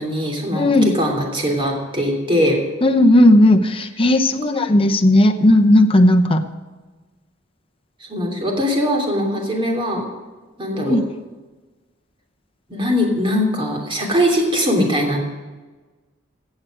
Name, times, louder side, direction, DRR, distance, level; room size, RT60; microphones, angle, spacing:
voice 1, 0.0-2.6 4.3-4.4 8.0-10.1 10.6-11.0 12.7-15.2, equal, 25° right, 1 dB, 2.8 m, -21 dB
voice 2, 0.5-0.9 2.8-6.4 10.8-11.0, left 1 dB, 30° left, 5 dB, 0.9 m, -14 dB
15.5 x 8.0 x 6.2 m, 1.3 s
head